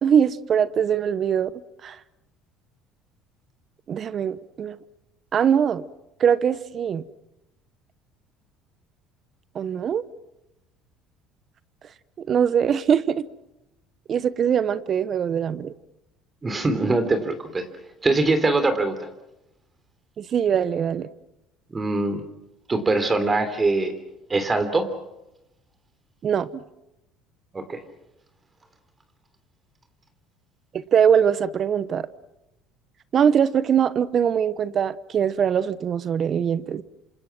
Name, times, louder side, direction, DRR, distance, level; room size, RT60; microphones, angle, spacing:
voice 1, 0.0-1.5 1.8-2.0 3.9-4.8 5.3-5.9 6.2-7.0 9.5-10.0 12.2-13.3 14.1-15.7 20.2-21.1 26.2-26.6 30.7-32.1 33.1-36.8, right 8 dB, 45° right, 15 dB, 1.0 m, -22 dB
voice 2, 16.4-17.7 18.0-19.0 21.7-22.2 22.7-23.9 24.3-24.9 27.5-27.8, right 3 dB, 25° right, 9 dB, 3.5 m, -22 dB
28.0 x 27.0 x 6.1 m, 0.93 s
supercardioid pair, 80°, 0 cm